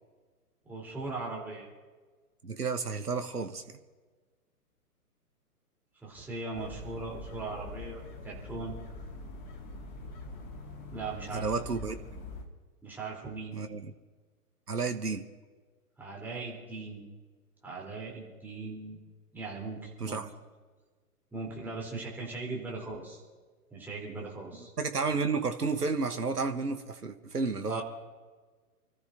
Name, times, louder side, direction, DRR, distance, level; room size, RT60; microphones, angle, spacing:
voice 1, 0.6-1.7 6.0-8.7 10.9-11.5 12.8-13.6 16.0-17.1 17.6-19.0 19.3-20.2 21.3-23.2 23.7-24.7 27.7-27.8, right 3 dB, 5° right, -4 dB, 3.5 m, -39 dB
voice 2, 2.4-3.6 11.3-12.0 13.5-13.9 14.7-15.2 20.0-20.3 24.8-27.8, right 4 dB, 85° right, 8 dB, 1.2 m, -31 dB
sound 1, 6.5-12.4, left 2 dB, 30° left, 2.2 m, -44 dB
29.0 x 14.0 x 2.7 m, 1.4 s
figure-of-eight pair, 120°, 46 cm